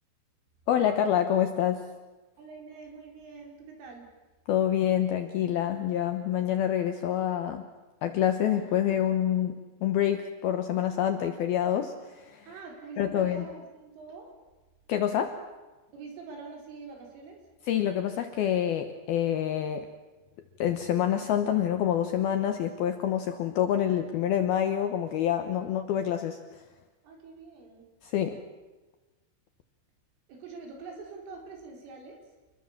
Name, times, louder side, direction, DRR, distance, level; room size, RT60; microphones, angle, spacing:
voice 1, 0.7-1.9 4.5-7.7 8.0-12.5 13.0-13.5 14.9-15.4 17.7-19.9 20.6-26.4 28.0-28.4, left 10 dB, 75° left, 7 dB, 2.3 m, -27 dB
voice 2, 2.4-4.1 12.4-14.3 15.9-17.4 27.0-27.8 30.3-32.2, right 4 dB, 80° right, 2 dB, 6.8 m, -45 dB
28.0 x 21.5 x 7.3 m, 1.2 s
omnidirectional pair, 5.7 m